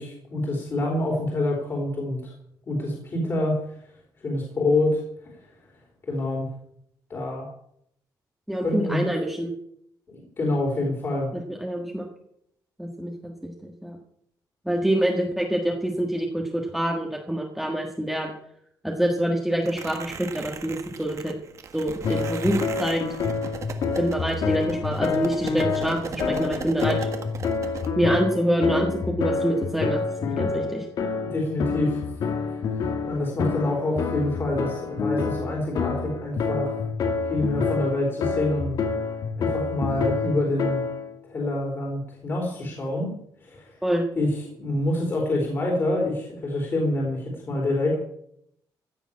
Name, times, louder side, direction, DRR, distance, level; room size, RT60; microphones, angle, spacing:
voice 1, 0.0-2.3 2.7-3.6 4.2-5.3 6.1-6.5 7.1-7.5 8.6-9.0 10.1-11.3 31.2-32.6 33.0-36.8 37.3-38.7 39.4-40.9 41.2-43.1 43.4-43.8 44.2-48.0, left 2 dB, 35° left, -1 dB, 3.7 m, -27 dB
voice 2, 8.5-9.5 11.3-12.1 12.8-14.0 14.7-18.3 18.8-21.4 21.7-23.0 24.0-27.1 28.0-30.9 43.8-44.0, right 1 dB, ahead, 0 dB, 1.6 m, -26 dB
sound 1, 19.6-27.9, right 6 dB, 45° right, 1.6 m, -38 dB
sound 2, 22.0-41.1, left 5 dB, 60° left, 2.3 m, -28 dB
16.0 x 7.2 x 8.7 m, 0.72 s
cardioid pair, 155°, 7 cm